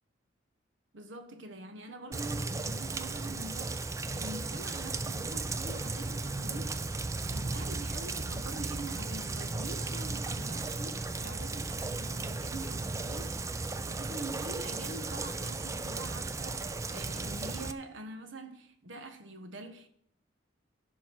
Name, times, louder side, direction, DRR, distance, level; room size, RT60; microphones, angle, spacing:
voice 1, 0.9-6.8 7.3-13.6 13.9-19.9, right 2 dB, 80° right, 1.2 m, -44 dB
Rain, 2.1-17.7, right 3 dB, 15° right, 0.3 m, -35 dB
16.0 x 5.8 x 4.6 m
head